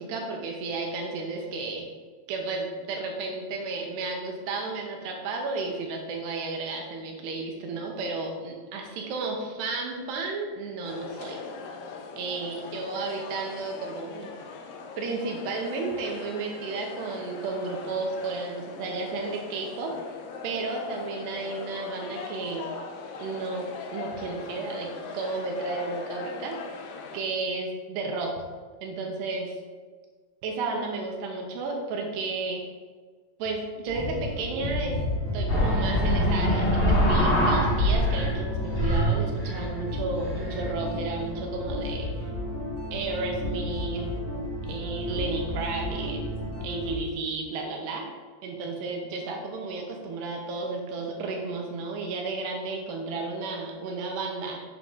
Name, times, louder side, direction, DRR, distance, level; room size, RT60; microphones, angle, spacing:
voice 1, 0.0-1.9 2.3-11.4 12.2-14.3 15.0-20.0 20.4-22.7 23.2-26.9 27.1-28.3 28.8-29.5 30.4-32.6 33.4-35.0 35.3-42.3 42.9-44.1 44.7-46.2 46.6-48.1 48.4-54.6, right 3 dB, 75° right, 1 dB, 3.1 m, -33 dB
sound 1, 10.8-27.2, left 4 dB, 80° left, 2.0 m, -40 dB
sound 2, 33.9-46.9, left 1 dB, 55° left, 2.8 m, -33 dB
sound 3, 35.5-38.4 38.6-40.7, equal, 35° left, 2.8 m, -24 dB
8.5 x 7.7 x 3.9 m, 1.5 s
omnidirectional pair, 5.1 m